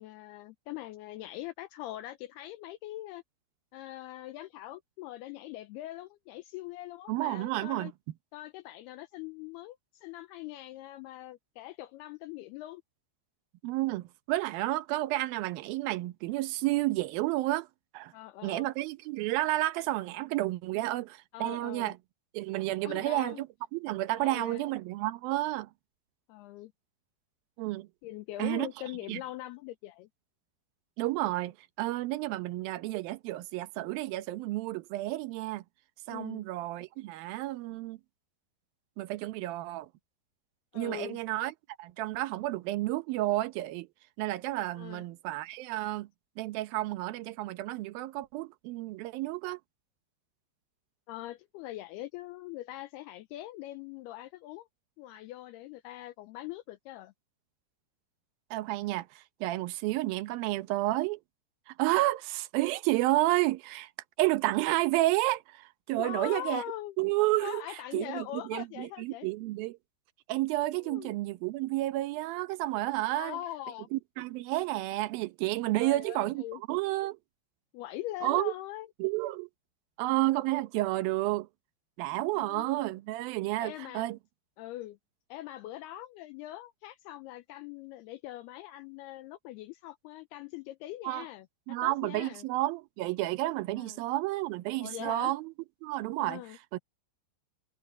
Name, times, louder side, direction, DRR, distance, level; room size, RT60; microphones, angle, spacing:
voice 1, 0.0-3.2 3.7-7.9 8.3-12.8 18.1-18.7 21.3-21.9 22.8-23.4 24.2-24.6 26.3-26.7 28.0-30.1 36.1-36.5 40.7-41.2 44.8-45.1 51.1-54.7 55.0-57.1 66.0-67.0 67.4-69.3 70.8-71.2 73.1-73.9 75.7-76.6 77.7-78.9 82.3-82.7 83.6-84.1 84.6-85.0 85.3-92.5 93.8-94.0 94.8-95.3 96.2-96.6, left 15 dB, 85° left, 2.3 m, -42 dB
voice 2, 7.1-7.9 13.6-17.7 17.9-18.1 18.4-22.0 22.3-23.5 23.7-25.7 27.6-27.9 28.4-28.7 29.1-29.2 31.0-35.6 36.1-38.0 39.0-39.9 40.7-43.9 44.2-46.1 46.4-49.6 58.5-61.2 61.7-63.9 64.2-66.6 67.0-67.6 67.9-69.8 70.3-73.4 73.9-77.2 78.2-78.5 79.0-79.5 80.0-81.5 82.0-84.2 91.0-91.2 91.7-95.5 95.8-96.4 96.7-96.8, right 17 dB, 80° right, 2.1 m, -31 dB
omnidirectional pair, 5.4 m